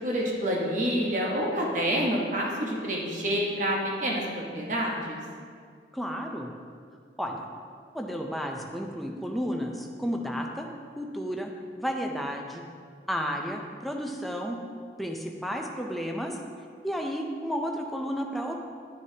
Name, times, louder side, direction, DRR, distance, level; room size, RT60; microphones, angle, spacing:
voice 1, 0.0-5.2, equal, 45° right, -2 dB, 1.2 m, -28 dB
voice 2, 5.9-6.5 7.2-7.4 7.9-10.7 11.0-11.5 11.8-12.6 13.1-14.6 15.0-16.4 16.8-18.6, equal, ahead, 1 dB, 0.5 m, -32 dB
9.3 x 6.4 x 2.8 m, 2.1 s
head